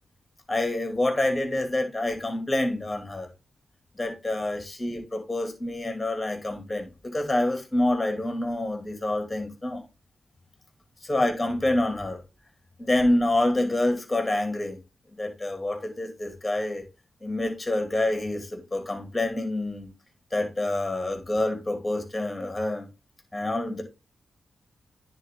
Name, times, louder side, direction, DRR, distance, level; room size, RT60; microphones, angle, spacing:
voice 1, 0.5-3.3 3.9-9.8 11.0-12.2 12.8-14.8 15.2-16.8 17.2-19.9 20.3-22.9 23.3-23.8, left 1 dB, 20° left, 2.7 m, -27 dB
9.8 x 3.9 x 3.7 m
supercardioid pair, 45°, 0 cm